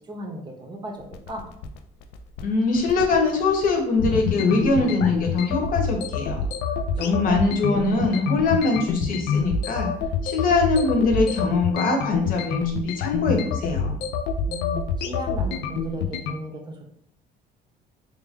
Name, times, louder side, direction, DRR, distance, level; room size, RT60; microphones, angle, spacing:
voice 1, 0.1-1.4 6.9-7.4 7.7-8.0 14.5-16.8, right 1 dB, 25° right, 2 dB, 0.6 m, -36 dB
sound 1, 1.0-16.3, left 6 dB, 90° left, 0.4 m, -27 dB
voice 2, 2.4-6.4 7.0-9.9 10.2-14.0, left 3 dB, 55° left, 1 dB, 0.9 m, -22 dB
3.3 x 2.4 x 3.5 m, 0.68 s
cardioid pair, 110°, 17 cm